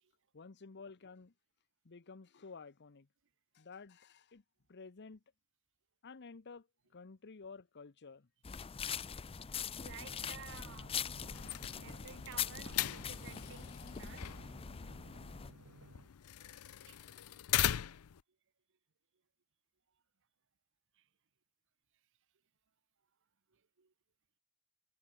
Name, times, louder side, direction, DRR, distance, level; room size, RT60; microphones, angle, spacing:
voice 1, 0.3-1.3 1.8-3.1 3.5-4.4 4.7-5.2 6.0-6.7 6.9-8.3, left 4 dB, 55° left, 0.8 m, -52 dB
sound 1, 8.4-15.5, left 7 dB, 25° left, 0.5 m, -42 dB
voice 2, 9.8-10.9 11.8-14.6 16.9-17.4 20.9-21.1 23.5-23.9, right 7 dB, 60° right, 1.0 m, -54 dB
Drum, 10.0-16.1, right 2 dB, 85° right, 1.4 m, -58 dB
sound 2, 11.2-18.2, left 12 dB, 90° left, 0.5 m, -40 dB
head